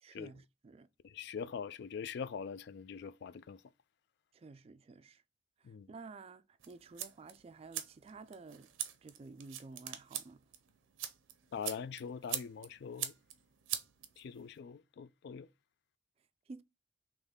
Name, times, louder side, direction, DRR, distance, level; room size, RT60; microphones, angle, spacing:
voice 1, 0.0-0.9 4.3-5.2 5.9-8.7 9.0-10.4 16.5-16.6, right 4 dB, 30° right, 0.3 m, -52 dB
voice 2, 1.0-3.6 5.6-5.9 11.5-13.1 14.2-15.5, left 6 dB, 60° left, 0.3 m, -43 dB
sound 1, 6.6-14.6, right 11 dB, 85° right, 0.6 m, -44 dB
3.9 x 3.0 x 3.5 m
head